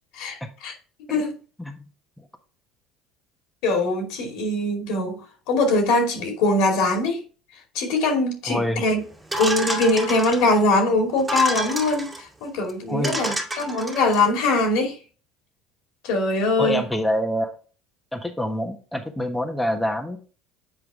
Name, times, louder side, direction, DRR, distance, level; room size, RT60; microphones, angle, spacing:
voice 1, 0.1-0.7 1.1-1.3 3.6-5.2 5.5-7.2 7.7-9.0 9.4-12.1 12.4-15.0 16.0-16.8, left 2 dB, 75° left, 2.5 m, -22 dB
voice 2, 8.4-8.8 12.9-13.3 16.6-17.5 18.1-20.2, equal, 5° left, 1.3 m, -26 dB
sound 1, 9.3-10.6 11.2-12.2 12.7-12.8 13.0-14.2, right 1 dB, 10° right, 2.3 m, -29 dB
7.9 x 4.8 x 3.6 m
supercardioid pair, 90°, 0 cm